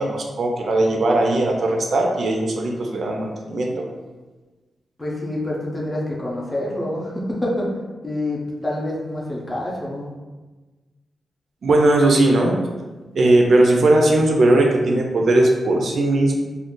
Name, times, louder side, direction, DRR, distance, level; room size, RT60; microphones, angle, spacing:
voice 1, 0.0-3.8 11.6-12.6 13.2-16.4, right 2 dB, 60° right, 1 dB, 0.3 m, -18 dB
voice 2, 5.0-7.7 8.0-10.1, left 1 dB, 10° left, -4 dB, 0.5 m, -27 dB
2.4 x 2.1 x 3.6 m, 1.3 s
wide cardioid pair, 135°, 0 cm